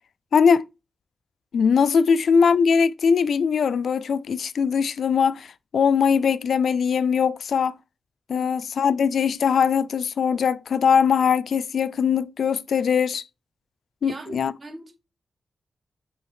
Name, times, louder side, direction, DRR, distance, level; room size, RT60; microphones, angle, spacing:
voice 1, 0.3-0.6 1.5-5.5 5.7-7.7 8.3-13.2 14.0-14.5, left 6 dB, 80° left, 0.4 m, -21 dB
voice 2, 8.3-8.7 14.0-14.9, right 2 dB, 50° right, 2.4 m, -41 dB
6.3 x 4.6 x 4.7 m
cardioid pair, 80°, 0 cm